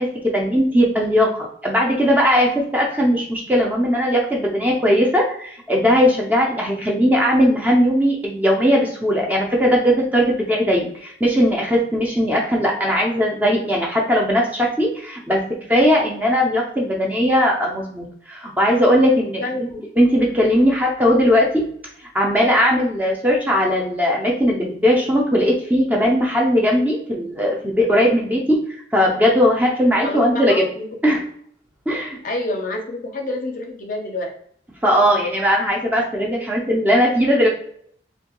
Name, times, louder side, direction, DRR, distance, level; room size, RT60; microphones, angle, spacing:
voice 1, 0.0-15.4 15.7-19.4 20.0-21.6 22.1-28.6 28.9-30.6 31.0-31.2 31.9-32.2 34.8-37.5, equal, 10° right, -2 dB, 0.4 m, -18 dB
voice 2, 19.4-19.8 30.0-31.2 32.2-34.3, left 2 dB, 45° left, 2 dB, 0.5 m, -28 dB
2.7 x 2.2 x 2.9 m, 0.63 s
head